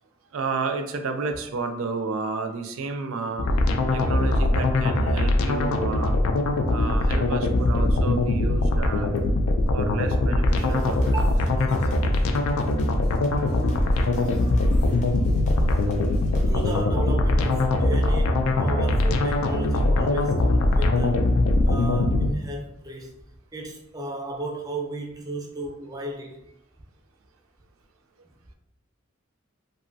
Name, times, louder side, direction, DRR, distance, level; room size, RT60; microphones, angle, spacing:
voice 1, 0.3-3.5 3.9-6.1 6.7-9.1 9.7-11.2, right 4 dB, 80° right, 6 dB, 0.4 m, -31 dB
sound 1, 3.4-22.3, left 2 dB, 90° left, 0.4 m, -22 dB
sound 2, 10.5-16.7, equal, 35° left, 0.5 m, -35 dB
voice 2, 11.0-11.4 16.3-21.2 21.6-23.1 23.5-26.4, right 2 dB, 20° right, 1 dB, 0.4 m, -34 dB
2.9 x 2.5 x 2.6 m, 0.82 s
head